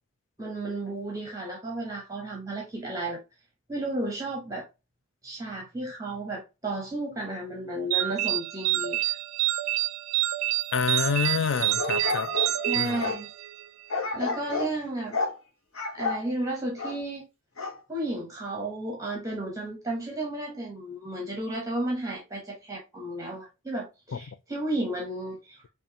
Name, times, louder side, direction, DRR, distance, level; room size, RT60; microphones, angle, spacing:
voice 1, 0.4-3.2 3.7-4.7 5.2-9.2 12.7-13.3 14.1-15.2 15.9-17.3 17.9-25.6, right 1 dB, 15° right, 0.8 m, -33 dB
sound 1, 7.9-13.7, right 16 dB, 85° right, 0.3 m, -28 dB
voice 2, 10.7-12.3 12.7-13.1 24.1-24.2, left 6 dB, 60° left, 0.4 m, -28 dB
sound 2, 11.5-13.2 13.9-14.7 15.1-15.4 15.7-16.2 16.8-17.0 17.6-17.8, left 4 dB, 75° left, 1.0 m, -31 dB
5.4 x 2.4 x 2.8 m
head